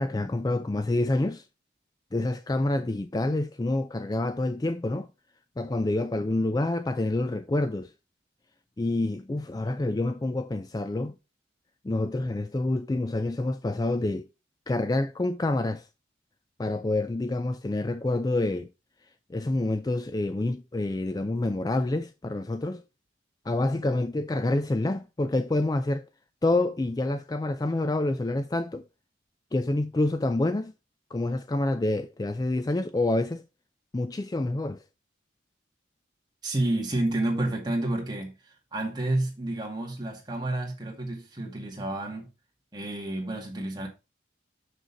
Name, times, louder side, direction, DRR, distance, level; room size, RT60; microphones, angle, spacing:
voice 1, 0.0-1.4 2.1-5.1 5.6-7.9 8.8-11.1 11.8-14.3 14.7-15.9 16.6-18.7 19.3-22.8 23.5-26.1 26.4-28.8 29.5-30.7 31.1-33.4 33.9-34.8, left 2 dB, 20° left, 0.3 m, -27 dB
voice 2, 36.4-42.3 42.7-43.9, right 1 dB, 20° right, 2.1 m, -30 dB
6.5 x 6.3 x 4.0 m
head